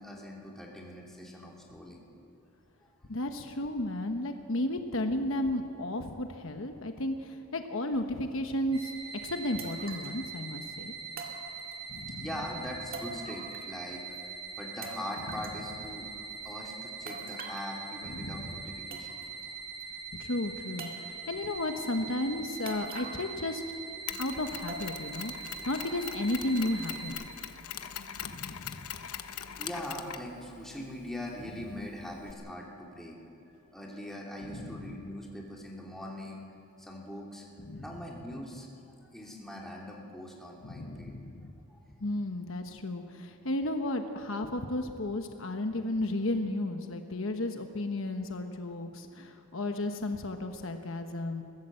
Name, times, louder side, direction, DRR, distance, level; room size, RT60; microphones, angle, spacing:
voice 1, 0.0-2.0 2.8-2.9 12.2-16.0 16.4-19.2 26.0-26.1 29.3-33.2 33.7-36.4 36.8-37.4 37.8-38.7 39.1-41.2 41.7-41.8, left 1 dB, ahead, -3 dB, 3.0 m, -42 dB
voice 2, 3.1-8.9 9.2-10.9 11.9-12.3 18.1-18.6 20.2-23.6 24.2-27.2 28.2-28.9 34.4-35.0 37.6-37.9 40.6-41.5 42.0-51.4, left 1 dB, 60° left, 6 dB, 1.1 m, -33 dB
sound 1, 8.7-27.1, right 5 dB, 85° right, 5.7 m, -42 dB
sound 2, 8.8-8.9 9.6-10.2 11.2-12.0 12.9-13.9 14.1-14.2 14.8-15.6 17.1-17.7 18.5-18.6 18.9-19.4 19.8-19.9 20.8-21.4 22.7-23.4 23.7-23.8 24.7-25.2 25.6-25.7 26.4-26.5, right 3 dB, 40° right, 1.9 m, -45 dB
Mechanisms, 24.1-32.3, left 9 dB, 80° left, 1.0 m, -43 dB
22.0 x 16.0 x 7.7 m, 2.8 s
head